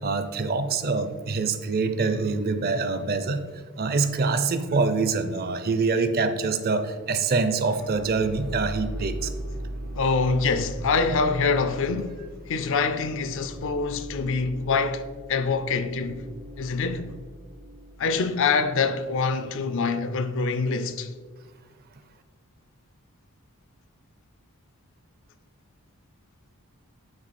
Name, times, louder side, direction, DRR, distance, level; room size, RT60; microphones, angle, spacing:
voice 1, 0.0-3.4 3.8-9.3, right 4 dB, 45° right, 0.5 m, -25 dB
sound 1, 7.6-19.5, right 1 dB, 75° right, 1.7 m, -39 dB
voice 2, 10.0-16.2 16.6-17.1 18.0-21.1, left 4 dB, 60° left, 0.5 m, -25 dB
8.8 x 4.1 x 4.2 m
head